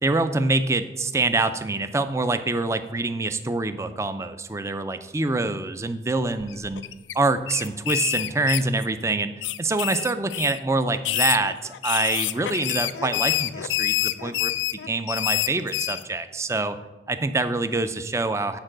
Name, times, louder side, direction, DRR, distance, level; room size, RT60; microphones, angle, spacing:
voice 1, 0.0-6.8 7.1-9.3 9.6-14.5 14.8-16.8 17.1-18.6, right 2 dB, 15° right, 10 dB, 0.4 m, -25 dB
sound 1, 6.4-7.1 7.5-9.0 9.4-10.6 11.0-16.0, left 13 dB, 90° left, 0.4 m, -27 dB
8.8 x 4.5 x 6.0 m, 1.1 s
head